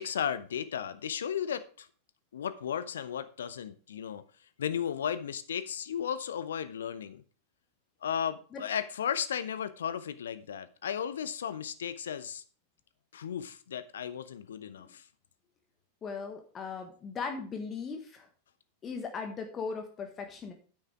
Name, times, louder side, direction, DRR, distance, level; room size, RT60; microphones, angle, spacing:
voice 1, 0.0-1.9 2.3-4.2 4.6-7.2 8.0-12.4 13.1-15.0, left 8 dB, 65° left, 0.8 m, -35 dB
voice 2, 16.0-18.3 18.8-20.5, left 5 dB, 25° left, 1.5 m, -38 dB
10.0 x 9.2 x 3.5 m
figure-of-eight pair, 90°, 0 cm